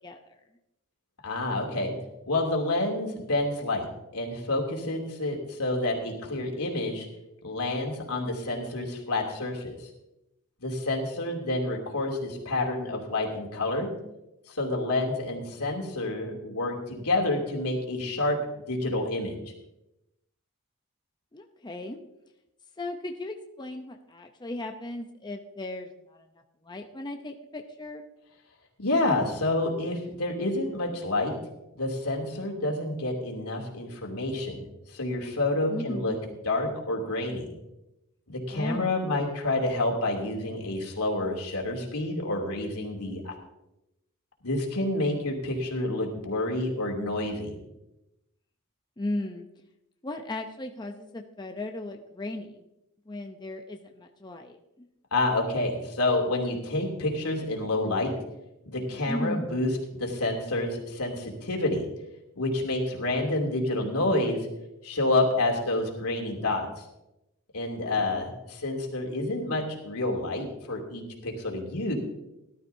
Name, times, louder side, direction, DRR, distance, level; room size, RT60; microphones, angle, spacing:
voice 1, 0.0-0.4 21.3-22.0 22.8-26.3 26.6-28.0 35.7-36.2 38.5-39.1 49.0-49.5 50.0-52.6 53.1-54.9 59.1-59.5 67.8-68.1, left 1 dB, 20° left, 4 dB, 0.7 m, -36 dB
voice 2, 1.2-2.0 2.3-3.9 4.1-7.1 7.4-9.8 10.6-13.9 14.5-19.4 28.8-31.4 31.8-34.7 34.9-36.2 36.4-37.5 38.3-43.3 44.4-47.6 55.1-58.2 58.6-61.8 62.4-64.5 64.8-66.7 67.5-71.9, left 2 dB, 85° left, 0 dB, 2.8 m, -28 dB
18.0 x 12.0 x 2.7 m, 0.90 s
head